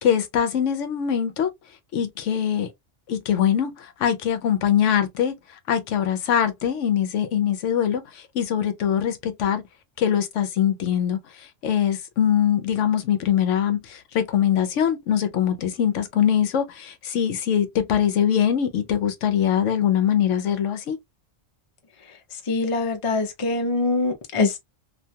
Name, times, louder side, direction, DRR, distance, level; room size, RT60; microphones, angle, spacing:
voice 1, 0.0-1.5 1.9-2.7 3.1-5.3 5.7-9.6 10.0-21.0, left 9 dB, 75° left, 0.9 m, -22 dB
voice 2, 22.5-24.6, left 3 dB, 35° left, 0.5 m, -23 dB
2.5 x 2.3 x 2.6 m
omnidirectional pair, 1.3 m